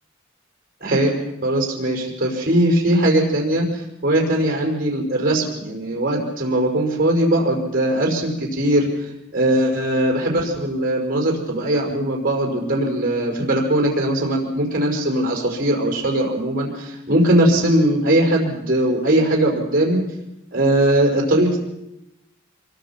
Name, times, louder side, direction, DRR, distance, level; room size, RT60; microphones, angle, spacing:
voice 1, 0.8-20.0 20.5-21.6, right 1 dB, 45° right, 1 dB, 5.3 m, -20 dB
25.5 x 23.0 x 5.9 m, 0.85 s
head